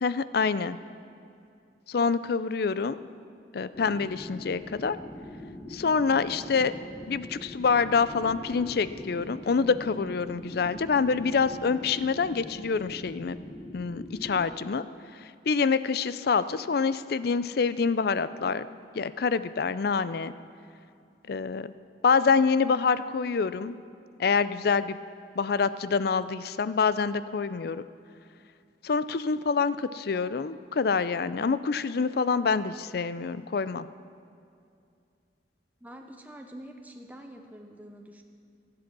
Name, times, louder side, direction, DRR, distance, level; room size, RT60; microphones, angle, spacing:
voice 1, 0.0-0.8 1.9-3.0 3.5-5.0 5.7-6.7 7.1-13.4 13.7-14.8 15.5-18.7 18.9-20.3 21.3-21.7 22.0-23.8 24.2-25.0 25.4-27.8 28.8-33.9, left 5 dB, 60° left, 15 dB, 0.5 m, -26 dB
sound 1, 3.7-14.5, left 1 dB, 20° left, 1.4 m, -42 dB
voice 2, 35.8-38.2, right 1 dB, 10° right, 3 dB, 0.7 m, -46 dB
23.0 x 7.8 x 6.1 m, 2.4 s
head